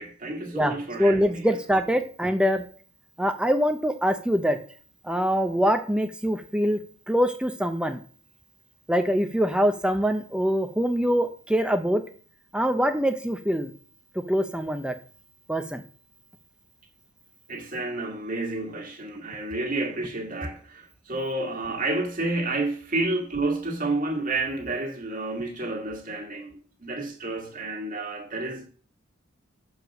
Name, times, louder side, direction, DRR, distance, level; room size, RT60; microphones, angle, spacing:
voice 1, 0.0-1.5 17.5-26.5 26.8-28.7, right 2 dB, 45° right, 2.0 m, -30 dB
voice 2, 1.0-2.6 3.2-4.6 5.0-6.8 7.1-8.0 8.9-12.0 12.5-13.7 14.1-15.0 15.5-15.8, equal, 5° right, 0.6 m, -24 dB
6.7 x 4.8 x 6.4 m
head